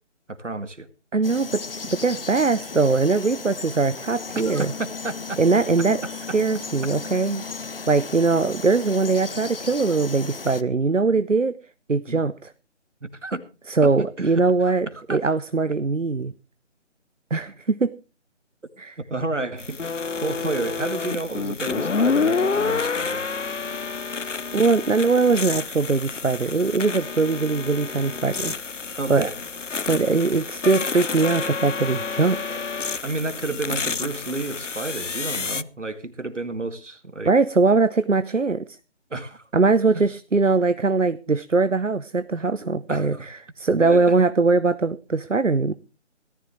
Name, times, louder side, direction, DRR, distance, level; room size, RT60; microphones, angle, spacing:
voice 1, 0.3-0.9 4.5-5.4 6.0-6.1 12.1-12.2 13.0-13.4 13.8-15.2 19.0-19.8 20.1-23.2 29.0-29.4 33.0-37.3 39.1-39.4 39.9-40.0 42.6-43.3 43.8-44.2, right 2 dB, 75° right, 11 dB, 2.3 m, -31 dB
voice 2, 1.1-1.6 1.9-4.7 5.4-6.0 6.3-7.4 7.9-11.6 11.9-12.5 13.7-16.3 17.3-17.9 18.8-19.0 24.5-28.5 29.1-29.3 29.9-32.6 37.3-38.8 39.5-45.7, right 4 dB, 90° right, 15 dB, 0.8 m, -21 dB
Frog, 1.2-10.6, left 4 dB, 50° left, 1.0 m, -36 dB
sound 1, 19.6-35.6, left 5 dB, 75° left, 0.8 m, -28 dB
18.0 x 14.0 x 3.1 m, 0.32 s
figure-of-eight pair, 155°, 37 cm